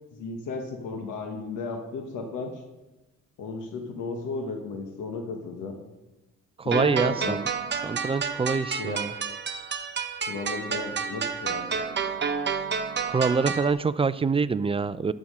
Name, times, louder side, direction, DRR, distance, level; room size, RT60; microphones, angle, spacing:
voice 1, 0.1-2.6 3.4-5.8 6.6-7.4 8.8-9.1 10.3-12.0, left 4 dB, 85° left, 3 dB, 1.4 m, -34 dB
voice 2, 6.6-7.5 7.8-9.1 13.1-15.1, right 5 dB, 20° right, 15 dB, 0.4 m, -25 dB
sound 1, 6.7-13.7, right 6 dB, 35° right, 0.9 m, -30 dB
12.5 x 6.2 x 6.5 m, 1.1 s
cardioid pair, 90°, 30 cm